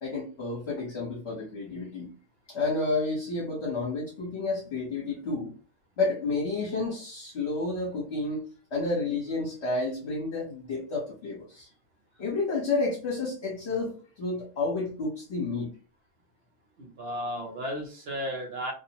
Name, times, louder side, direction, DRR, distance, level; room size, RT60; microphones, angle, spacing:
voice 1, 0.0-2.1 2.5-5.5 6.0-11.7 12.2-15.7, left 3 dB, 50° left, -4 dB, 1.1 m, -30 dB
voice 2, 16.8-18.7, equal, 55° right, 2 dB, 0.7 m, -34 dB
2.5 x 2.0 x 2.7 m, 0.36 s
omnidirectional pair, 1.5 m